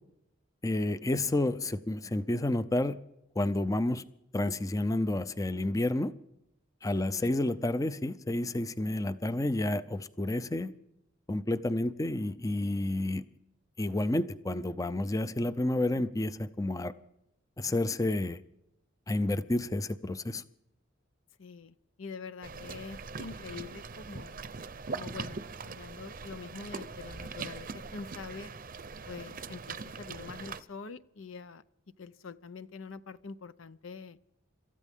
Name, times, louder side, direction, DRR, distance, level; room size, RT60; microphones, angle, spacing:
voice 1, 0.6-3.0 3.4-4.0 4.3-6.1 6.8-10.7 11.3-13.2 13.8-16.9 17.6-18.4 19.1-20.4, left 1 dB, 15° left, 14 dB, 0.5 m, -30 dB
voice 2, 6.9-7.3 21.4-24.4 24.9-28.5 29.1-31.6 32.0-34.2, left 4 dB, 85° left, 14 dB, 0.7 m, -45 dB
sound 1, 22.4-30.6, right 4 dB, 45° right, 0.7 m, -41 dB
27.0 x 14.0 x 3.6 m, 0.83 s
head